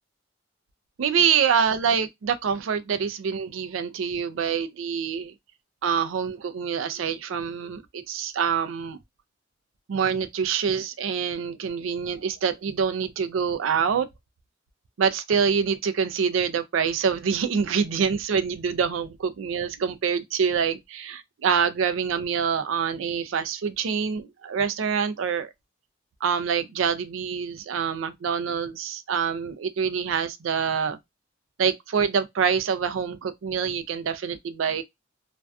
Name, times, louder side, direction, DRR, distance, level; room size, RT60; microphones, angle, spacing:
voice 1, 1.0-5.3 5.8-9.0 9.9-14.1 15.0-25.5 26.2-31.0 31.6-34.8, right 6 dB, 90° right, 0.4 m, -26 dB
2.5 x 2.2 x 2.2 m
head